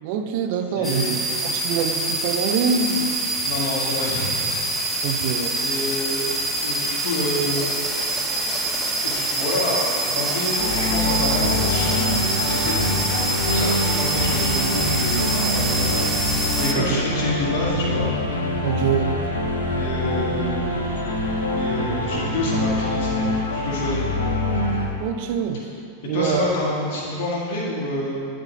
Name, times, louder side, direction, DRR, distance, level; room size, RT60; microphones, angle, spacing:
voice 1, 0.0-1.2 1.4-3.1 5.0-5.9 16.7-17.0 18.6-19.2 25.0-25.7 26.0-26.5, right 6 dB, 45° right, 7 dB, 0.5 m, -25 dB
voice 2, 0.8-1.3 3.3-4.6 5.6-7.7 9.0-12.1 12.4-12.8 13.3-16.2 16.6-18.1 19.7-20.8 21.5-24.0 26.1-28.3, left 1 dB, 50° left, -5 dB, 1.7 m, -28 dB
sound 1, 0.8-16.7, right 2 dB, 5° right, 0.8 m, -25 dB
sound 2, 10.6-24.9, left 1 dB, 70° left, 0.9 m, -24 dB
10.5 x 3.7 x 3.9 m, 2.6 s
figure-of-eight pair, 90°, 0 cm